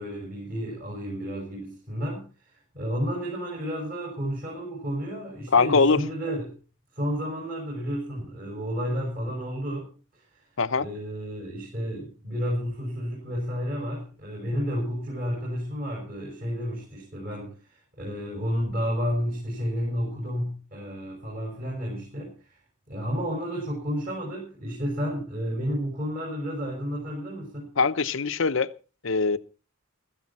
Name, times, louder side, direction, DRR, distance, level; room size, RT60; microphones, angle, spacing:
voice 1, 0.0-6.5 6.9-10.2 10.8-22.6 22.9-27.7, equal, 40° right, 6.1 m, -31 dB
voice 2, 5.5-6.0 10.6-10.9 27.8-28.7 29.0-29.4, left 4 dB, 60° left, 0.7 m, -22 dB
15.5 x 14.0 x 4.2 m
head